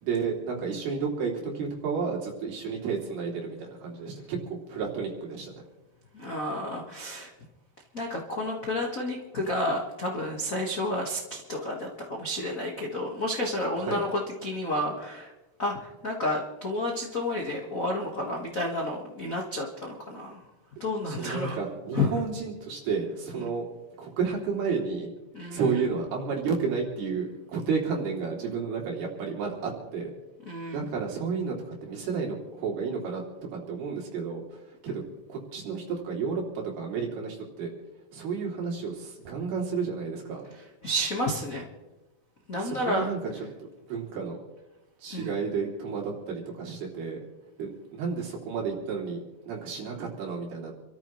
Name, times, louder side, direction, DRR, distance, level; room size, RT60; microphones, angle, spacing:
voice 1, 0.0-5.6 13.8-14.0 21.0-23.6 24.0-25.1 25.5-30.1 30.7-31.5 31.8-33.2 33.5-35.0 35.3-37.7 38.1-40.4 42.6-43.4 43.9-44.4 45.0-47.2 47.6-50.7, right 5 dB, 75° right, -2 dB, 5.1 m, -31 dB
voice 2, 6.1-7.3 7.9-15.3 15.6-20.4 20.8-21.6 21.9-22.1 23.4-23.5 25.3-25.8 30.4-30.9 40.8-41.7 42.5-43.1 45.1-45.3, left 1 dB, 85° left, -1 dB, 0.7 m, -31 dB
28.5 x 13.5 x 3.2 m, 1.1 s
omnidirectional pair, 4.5 m